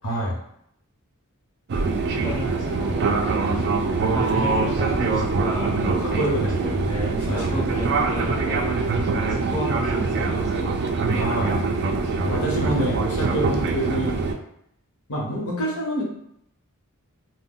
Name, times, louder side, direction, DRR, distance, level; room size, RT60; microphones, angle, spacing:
voice 1, 0.0-0.4 6.0-7.7 11.1-11.6 12.2-14.2 15.1-16.0, right 1 dB, 80° left, -2 dB, 0.9 m, -27 dB
Fixed-wing aircraft airplane, 1.7-14.3, right 4 dB, 50° right, 0.3 m, -24 dB
voice 2, 2.1-3.1 4.1-5.8 6.6-6.7 7.3-10.8, equal, 15° left, -6 dB, 0.5 m, -33 dB
2.2 x 2.1 x 3.7 m, 0.74 s
head